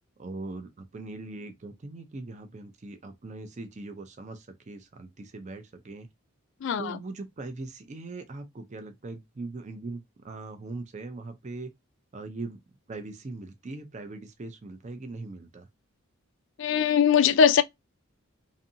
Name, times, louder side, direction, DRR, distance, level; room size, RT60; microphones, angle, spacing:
voice 1, 0.2-6.1 6.8-11.7 12.1-12.6 12.9-15.7, right 3 dB, 35° right, 0.5 m, -40 dB
voice 2, 6.6-7.0 16.6-17.6, left 7 dB, 60° left, 0.3 m, -21 dB
2.6 x 2.5 x 2.6 m
head